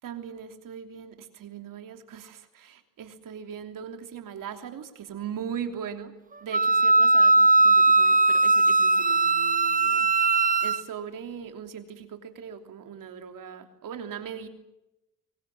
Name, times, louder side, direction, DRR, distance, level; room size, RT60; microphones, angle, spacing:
voice 1, 0.0-6.1 6.4-14.5, right 8 dB, 90° right, 6 dB, 3.3 m, -39 dB
Wind instrument woodwind instrument, 6.5-10.8, right 3 dB, 25° right, 0.9 m, -19 dB
24.5 x 24.0 x 7.3 m, 0.92 s
cardioid pair, 105°, 32 cm